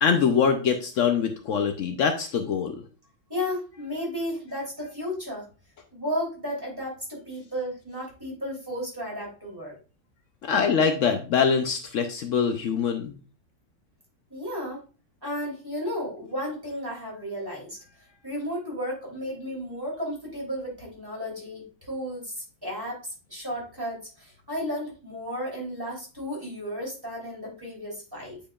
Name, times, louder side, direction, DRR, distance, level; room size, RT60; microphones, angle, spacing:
voice 1, 0.0-2.8 10.4-13.2, left 6 dB, 85° left, 6 dB, 0.6 m, -24 dB
voice 2, 3.3-5.5 5.9-9.7 14.3-14.8 15.2-17.8 18.2-28.4, equal, 10° right, -3 dB, 3.1 m, -33 dB
9.0 x 5.1 x 2.3 m, 0.34 s
omnidirectional pair, 2.1 m